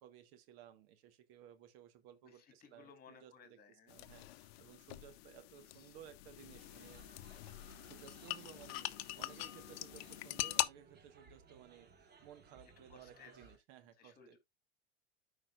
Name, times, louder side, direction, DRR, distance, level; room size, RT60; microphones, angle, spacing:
voice 1, 0.0-3.6 3.9-7.1 7.8-14.4, right 10 dB, 60° right, 1.3 m, -58 dB
voice 2, 2.2-4.0 5.2-5.3 5.7-6.0 12.9-13.5 14.0-14.4, left 6 dB, 30° left, 2.6 m, -61 dB
sound 1, 3.9-10.7, left 16 dB, 65° left, 0.7 m, -43 dB
sound 2, 6.5-13.6, right 4 dB, 30° right, 1.7 m, -62 dB
13.0 x 4.9 x 2.4 m
hypercardioid pair, 90°, 32 cm